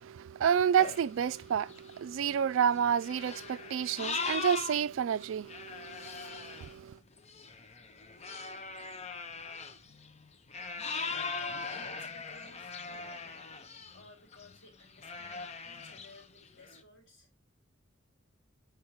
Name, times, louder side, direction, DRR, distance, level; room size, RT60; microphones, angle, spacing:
voice 1, 0.0-6.9, right 8 dB, 75° right, 0.3 m, -30 dB
sound 1, 0.8-4.8 5.2-14.1 14.3-14.6 15.0-16.8, left 4 dB, 35° left, 0.7 m, -40 dB
voice 2, 10.8-13.5 13.9-17.3, left 2 dB, 75° left, 3.7 m, -57 dB
7.9 x 4.7 x 2.9 m
head